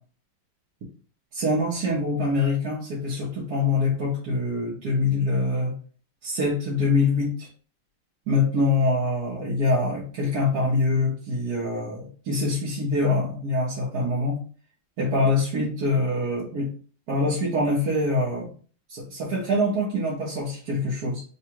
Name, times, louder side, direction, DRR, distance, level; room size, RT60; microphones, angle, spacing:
voice 1, 1.3-5.8 6.2-7.5 8.3-14.4 15.0-16.7 17.1-18.5 18.9-21.2, left 2 dB, 55° right, -5 dB, 1.3 m, -24 dB
3.7 x 2.4 x 4.4 m, 0.41 s
omnidirectional pair, 2.3 m